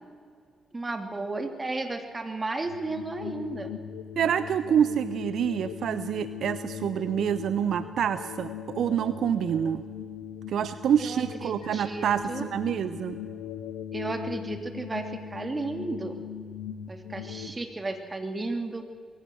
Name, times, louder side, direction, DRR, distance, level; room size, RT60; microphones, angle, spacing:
voice 1, 0.7-3.7 11.0-12.4 13.9-16.2 16.9-18.9, right 2 dB, 30° right, 6 dB, 2.9 m, -34 dB
sound 1, 2.6-17.5, left 9 dB, 90° left, 1.2 m, -39 dB
voice 2, 4.2-9.8 10.5-13.2, right 9 dB, 70° right, 14 dB, 0.5 m, -27 dB
21.5 x 16.0 x 7.7 m, 2.1 s
hypercardioid pair, 45°, 0 cm